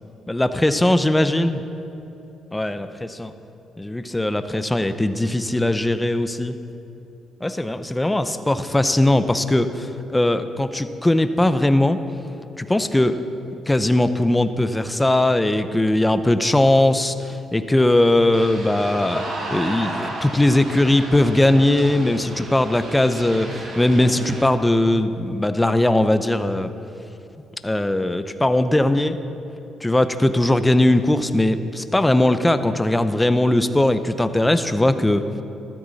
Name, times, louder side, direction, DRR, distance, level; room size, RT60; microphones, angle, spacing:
voice 1, 0.3-1.6 2.5-3.3 3.8-6.6 7.4-12.0 12.6-13.2 13.5-26.7 27.6-29.2 29.8-35.2, left 1 dB, 10° left, 10 dB, 0.7 m, -19 dB
sound 1, 18.3-24.4, right 1 dB, 65° right, 3.1 m, -33 dB
13.0 x 13.0 x 4.1 m, 2.9 s
cardioid pair, 90°, 0 cm